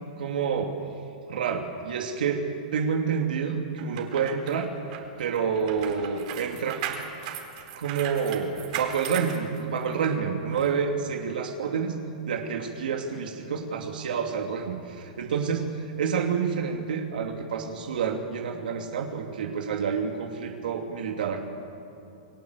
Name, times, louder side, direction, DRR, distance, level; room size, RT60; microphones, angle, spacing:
voice 1, 0.2-0.7 1.3-2.4 2.7-4.7 5.2-6.8 7.7-11.9 12.2-21.4, right 6 dB, 85° right, 2 dB, 2.9 m, -28 dB
sound 1, 3.8-10.1 10.5-10.7, right 9 dB, 50° right, 4.0 m, -37 dB
29.5 x 20.5 x 8.3 m, 2.7 s
hypercardioid pair, 155°, 5 cm